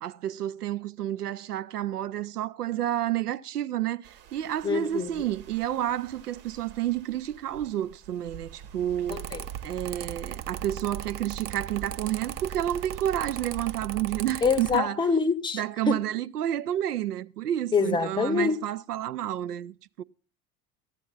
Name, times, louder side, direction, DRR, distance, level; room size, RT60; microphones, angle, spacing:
voice 1, 0.0-9.3 9.6-15.1 15.5-20.0, right 12 dB, 85° right, 0.5 m, -30 dB
sound 1, 4.0-13.8, right 8 dB, 50° right, 2.0 m, -48 dB
voice 2, 4.6-5.1 9.1-9.4 14.4-15.6 15.9-16.0 17.7-18.6, left 5 dB, 10° left, 0.7 m, -25 dB
Mechanical fan, 9.1-14.8, right 10 dB, 30° right, 0.6 m, -37 dB
14.5 x 9.1 x 3.9 m
figure-of-eight pair, 70°, 45 cm